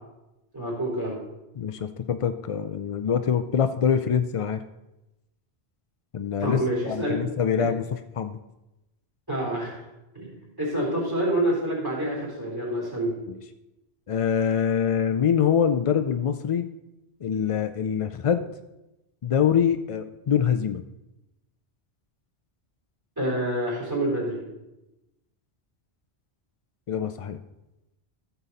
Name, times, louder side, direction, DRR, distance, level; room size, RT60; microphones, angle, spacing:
voice 1, 0.5-1.2 6.4-7.1 9.3-9.8 10.1-13.1 23.2-24.4, right 1 dB, 20° right, -4 dB, 3.8 m, -27 dB
voice 2, 1.6-4.6 6.1-7.8 8.2-8.4 13.3-13.4 14.1-16.7 17.2-18.5 19.2-20.8 26.9-27.4, left 7 dB, 60° left, 9 dB, 0.3 m, -24 dB
14.0 x 7.0 x 4.1 m, 0.95 s
omnidirectional pair, 1.1 m